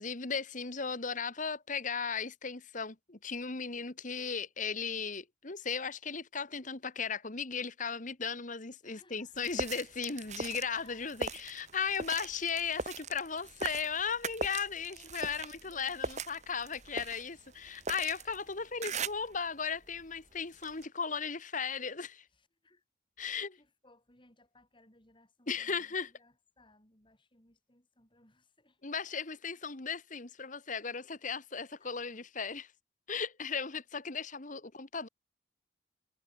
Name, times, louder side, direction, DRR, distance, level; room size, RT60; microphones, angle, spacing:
voice 1, 0.0-22.2 23.2-23.6 25.5-26.1 28.8-32.7 33.1-35.1, left 6 dB, 45° left, 1.5 m, -36 dB
voice 2, 8.8-9.4 10.6-11.1 14.9-16.1 22.3-22.8 23.2-28.8 31.8-32.2 34.5-34.7, left 2 dB, 25° left, 6.4 m, -64 dB
sound 1, 9.4-19.4 19.8-20.9, right 4 dB, 40° right, 2.2 m, -40 dB
head